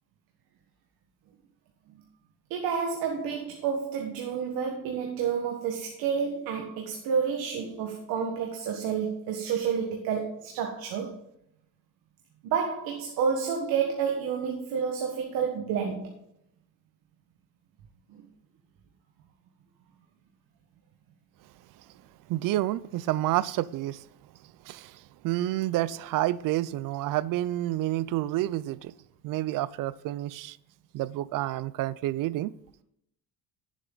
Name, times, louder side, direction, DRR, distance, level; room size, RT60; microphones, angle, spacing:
voice 1, 2.5-11.1 12.4-16.1 18.1-18.2, right 6 dB, 80° right, 1.5 m, -30 dB
voice 2, 22.3-24.1 24.6-28.9 29.2-30.6 30.9-32.5, right 15 dB, 65° right, 0.5 m, -29 dB
10.0 x 7.6 x 3.9 m
cardioid pair, 135°, 35 cm